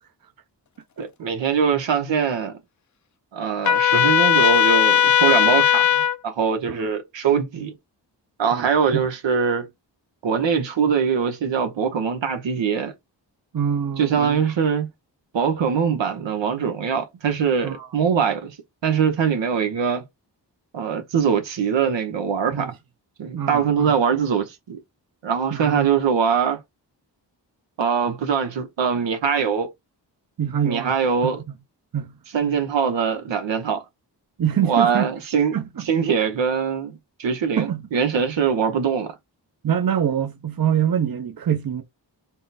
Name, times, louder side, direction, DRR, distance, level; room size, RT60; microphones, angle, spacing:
voice 1, 1.0-2.6 3.3-7.7 8.4-9.7 10.2-12.9 14.0-14.9 15.3-18.6 18.8-20.0 20.7-22.7 23.2-24.8 25.2-26.6 27.8-29.7 30.6-31.4 32.3-33.8 34.6-35.6 35.9-39.1, right 6 dB, 90° right, 0.9 m, -22 dB
Trumpet, 3.6-6.2, left 9 dB, 45° left, 0.5 m, -17 dB
voice 2, 8.5-9.1 13.5-14.4 17.6-17.9 22.5-22.7 23.3-23.9 25.5-25.9 30.4-30.9 31.2-31.3 31.9-32.2 34.4-35.1 35.5-35.8 37.6-37.9 39.6-41.8, right 9 dB, 55° right, 0.8 m, -25 dB
3.7 x 2.1 x 4.0 m
cardioid pair, 50°, 43 cm